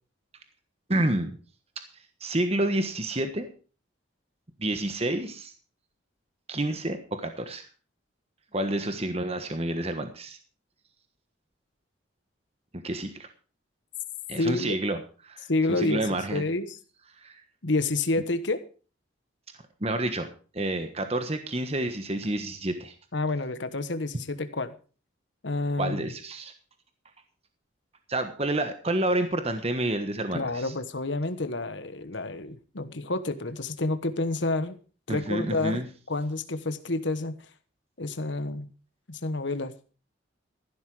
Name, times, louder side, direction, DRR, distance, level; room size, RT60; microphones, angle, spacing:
voice 1, 0.9-1.4 2.2-3.5 4.6-5.5 6.5-7.6 8.5-10.4 12.7-13.3 14.3-16.4 17.2-17.4 19.8-20.3 20.5-22.9 25.8-26.5 28.1-30.7 35.1-35.9, right 1 dB, 30° right, 7 dB, 1.3 m, -29 dB
voice 2, 14.4-14.8 15.5-16.8 17.6-18.6 23.1-24.7 25.4-26.1 30.3-34.8 35.1-37.3 38.0-38.7 39.1-39.7, left 2 dB, 70° left, 10 dB, 1.2 m, -29 dB
14.0 x 12.5 x 4.9 m, 0.37 s
head